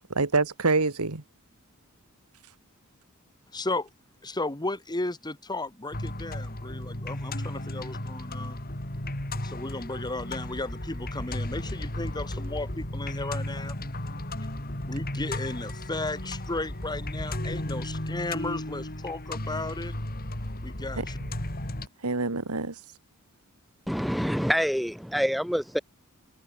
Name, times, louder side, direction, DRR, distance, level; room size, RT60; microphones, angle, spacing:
voice 1, 0.1-1.2 21.0-21.1 22.0-22.8, right 3 dB, 90° right, 1.8 m, -26 dB
voice 2, 3.5-3.9 4.2-8.6 9.4-13.8 14.9-19.9 20.6-21.2, left 2 dB, 20° left, 1.8 m, -34 dB
sound 1, 5.9-21.9, left 1 dB, 45° left, 3.6 m, -34 dB
voice 3, 23.9-25.8, equal, ahead, 0.5 m, -26 dB
head